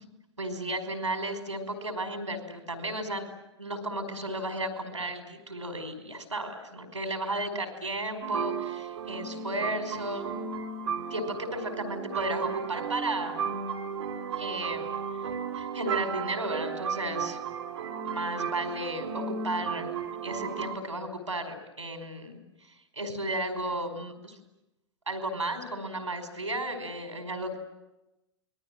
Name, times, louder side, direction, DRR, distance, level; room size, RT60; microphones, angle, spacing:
voice 1, 0.4-3.3 3.6-10.3 11.1-13.4 14.4-14.9 15.5-17.4 18.0-19.9 20.2-22.4 22.9-24.3 25.1-27.6, right 1 dB, 85° right, 5 dB, 5.3 m, -34 dB
sound 1, 8.2-20.8, right 6 dB, 65° right, 3.1 m, -34 dB
28.0 x 22.5 x 7.7 m, 0.95 s
figure-of-eight pair, 100°, 15 cm